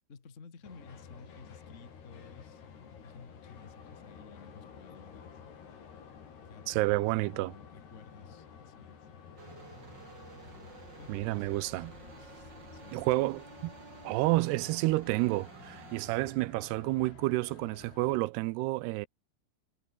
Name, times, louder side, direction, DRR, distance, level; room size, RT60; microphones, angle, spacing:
voice 1, 0.1-2.6 3.0-5.4 6.5-9.1 9.5-9.7 10.4-10.5 11.0-13.3, left 5 dB, 30° left, 1.4 m, -54 dB
sound 1, 0.6-18.2, left 7 dB, 70° left, 6.2 m, -52 dB
voice 2, 6.7-7.5 11.1-11.9 12.9-13.7 14.0-19.1, right 20 dB, 85° right, 2.6 m, -30 dB
sound 2, 9.4-16.1, right 4 dB, 30° right, 3.5 m, -51 dB
omnidirectional pair, 4.8 m